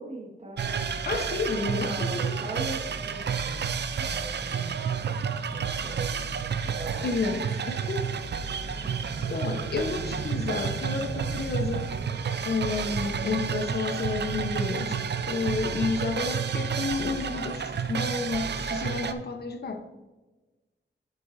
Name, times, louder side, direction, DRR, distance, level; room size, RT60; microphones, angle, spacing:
voice 1, 0.0-0.9 1.8-3.6 4.0-4.8 5.1-7.1 8.8-8.9 13.0-13.4, right 2 dB, 35° right, 1.8 m, -41 dB
sound 1, 0.6-18.8, left 1 dB, 75° left, 2.3 m, -46 dB
sound 2, 0.6-19.1, right 6 dB, 60° right, 0.5 m, -30 dB
voice 2, 1.1-2.4 7.0-8.1 8.7-8.9 9.3-11.9 12.4-19.8, left 4 dB, 55° left, 1.0 m, -31 dB
9.2 x 8.1 x 2.7 m
wide cardioid pair, 90°, 19 cm